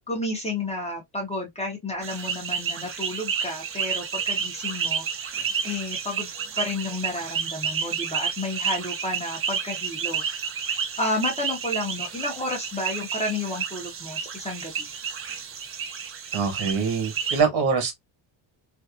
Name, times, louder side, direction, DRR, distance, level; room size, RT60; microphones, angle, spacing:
voice 1, 0.1-5.3 5.6-6.3 6.6-10.2 11.0-14.9, left 2 dB, 15° left, 0.7 m, -31 dB
sound 1, 2.0-17.4, right 6 dB, 30° right, 0.4 m, -31 dB
voice 2, 16.3-18.0, right 5 dB, 70° right, 1.3 m, -24 dB
2.6 x 2.3 x 2.3 m
cardioid pair, 135°, 48 cm